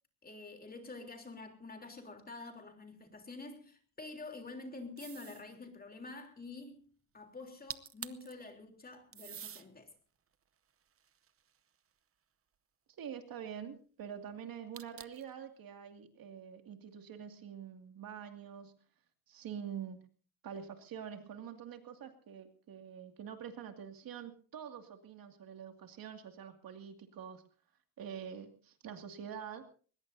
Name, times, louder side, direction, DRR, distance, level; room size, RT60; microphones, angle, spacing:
voice 1, 0.2-6.8 7.1-9.9, left 3 dB, 25° left, 3.5 m, -48 dB
sound 1, 5.0-5.5 7.4-7.5 7.7-8.3 9.1-9.7 10.3-11.8 14.7-15.3, right 8 dB, 35° right, 0.8 m, -47 dB
voice 2, 13.0-18.7 19.3-20.0 20.4-27.4 28.0-29.6, right 8 dB, 60° right, 2.4 m, -46 dB
21.0 x 20.5 x 2.7 m
cardioid pair, 140°, 39 cm